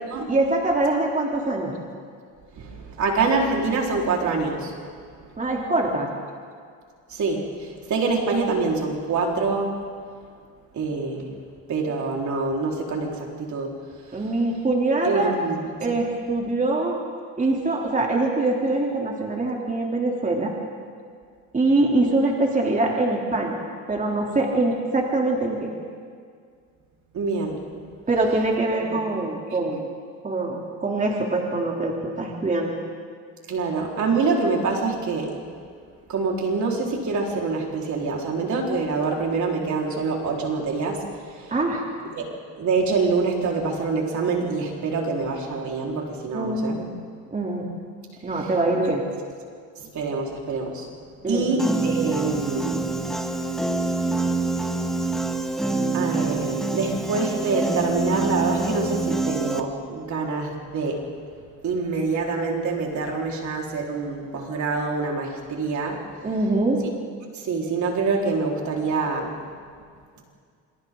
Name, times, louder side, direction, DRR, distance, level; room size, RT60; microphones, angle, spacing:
voice 1, 0.3-1.7 5.4-6.1 14.1-15.3 15.8-17.0 17.4-20.5 21.5-23.6 23.9-25.7 28.1-29.9 30.2-32.8 41.5-41.8 46.3-46.9 47.3-47.7 48.2-49.0 51.2-51.5 66.2-66.8, right 2 dB, 20° right, -2 dB, 3.4 m, -23 dB
voice 2, 2.5-4.8 7.1-9.7 10.7-11.4 11.7-13.7 14.0-14.3 15.0-15.9 27.1-27.6 28.9-29.0 33.5-35.3 36.1-41.5 42.1-42.2 42.6-46.8 48.4-48.5 49.8-50.9 51.3-52.9 55.9-61.1 61.6-66.0 67.3-69.3, right 4 dB, 55° right, -1 dB, 4.7 m, -26 dB
Piano, 51.6-59.6, right 2 dB, ahead, 1.6 m, -26 dB
27.5 x 26.5 x 4.0 m, 2.1 s
cardioid pair, 90°, 35 cm